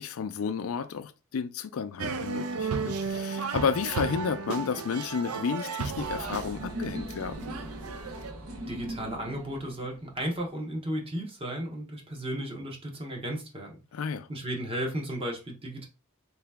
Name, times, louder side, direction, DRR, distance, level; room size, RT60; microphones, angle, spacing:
voice 1, 0.0-7.4 13.9-14.3, left 6 dB, 70° left, 0.4 m, -32 dB
sound 1, 2.0-8.3, right 5 dB, 85° right, 0.4 m, -34 dB
sound 2, 5.9-10.4, right 1 dB, 70° right, 0.8 m, -39 dB
voice 2, 8.7-13.8 14.3-15.9, right 1 dB, 25° right, 0.9 m, -34 dB
3.3 x 2.9 x 3.4 m
head